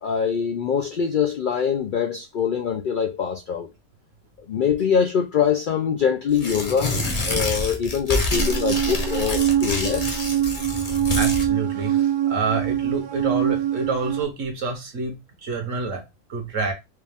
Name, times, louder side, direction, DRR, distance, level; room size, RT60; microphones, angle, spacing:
voice 1, 0.0-3.7 4.5-7.0 7.3-10.2, left 7 dB, 70° left, 0.4 m, -23 dB
Tearing, 6.3-11.5, left 2 dB, 35° left, 0.8 m, -27 dB
sound 1, 8.3-14.2, right 11 dB, 50° right, 0.6 m, -24 dB
voice 2, 11.1-15.1 15.4-16.7, right 4 dB, 70° right, 1.4 m, -28 dB
4.6 x 2.4 x 3.4 m
omnidirectional pair, 1.4 m